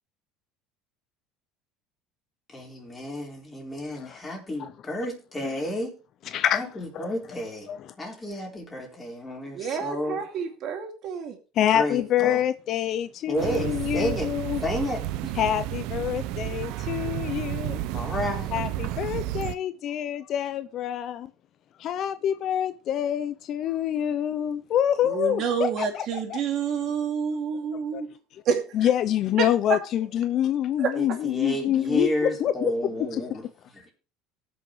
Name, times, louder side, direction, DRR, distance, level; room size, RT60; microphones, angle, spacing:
voice 1, 2.5-6.0 6.5-10.2 11.7-12.4 13.3-14.3 14.6-15.4 17.9-18.7 30.9-33.9, equal, 20° left, 4.3 m, -31 dB
voice 2, 9.5-11.4 25.0-28.1 28.4-28.6 30.8-30.9, right 7 dB, 55° right, 2.5 m, -28 dB
voice 3, 11.6-14.6 15.4-17.8 18.5-21.3 21.8-26.4 27.9-28.0 28.7-32.1 32.4-32.7, left 10 dB, 55° left, 0.6 m, -26 dB
sound 1, 13.4-19.6, right 14 dB, 70° right, 0.6 m, -31 dB
18.5 x 6.3 x 3.2 m
supercardioid pair, 100°, 0 cm